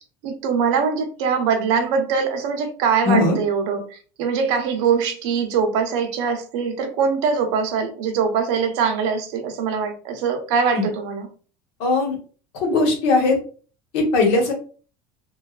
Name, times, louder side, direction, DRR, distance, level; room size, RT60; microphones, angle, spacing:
voice 1, 0.2-11.3, right 6 dB, 65° right, 5 dB, 0.7 m, -22 dB
voice 2, 3.0-3.4 10.7-10.9 11.8-12.2 12.6-13.4 13.9-14.5, left 3 dB, 65° left, 2 dB, 1.0 m, -19 dB
3.1 x 2.3 x 2.3 m, 0.40 s
cardioid pair, 175°, 16 cm